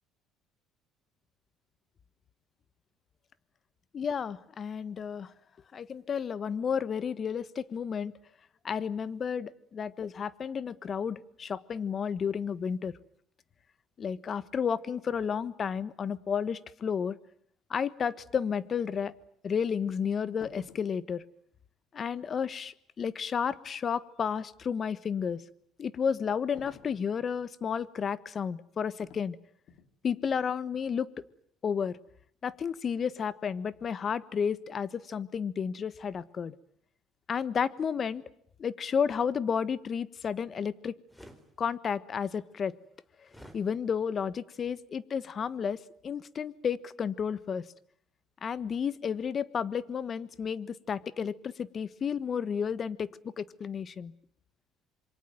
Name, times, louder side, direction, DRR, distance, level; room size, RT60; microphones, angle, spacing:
voice 1, 3.9-5.3 5.7-8.1 8.6-13.0 14.0-17.2 17.7-19.1 19.4-21.2 21.9-25.4 25.8-29.4 30.0-31.1 31.6-32.0 32.4-36.5 37.3-38.2 38.6-40.9 41.6-42.7 43.5-47.7 48.4-53.1 53.4-54.1, left 7 dB, 40° left, 17 dB, 1.4 m, -32 dB
sound 1, 20.4-21.0 26.5-27.1 29.0-29.3 29.7-30.0, left 8 dB, 65° left, 2.8 m, -51 dB
sound 2, 41.1-41.4 43.3-43.6, equal, 5° left, 4.2 m, -50 dB
27.0 x 23.5 x 9.4 m, 0.66 s
supercardioid pair, 90°, 0 cm